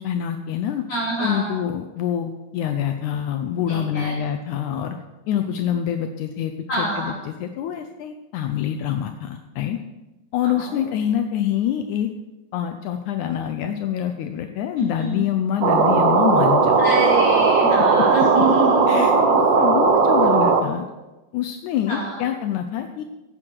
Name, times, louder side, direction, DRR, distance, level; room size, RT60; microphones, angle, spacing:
voice 1, 0.0-0.8 1.2-5.0 5.3-9.8 10.3-12.1 12.5-16.8 18.0-18.1 18.9-20.8 21.3-23.0, left 10 dB, 75° left, 6 dB, 2.1 m, -26 dB
voice 2, 0.9-1.6 3.7-4.2 6.7-7.2 10.4-10.8 14.8-15.2 16.8-19.4 21.9-22.2, right 1 dB, 45° left, -8 dB, 5.6 m, -26 dB
sound 1, 15.6-20.6, right 4 dB, 60° right, 1.2 m, -17 dB
17.5 x 10.0 x 4.6 m, 1.1 s
omnidirectional pair, 3.6 m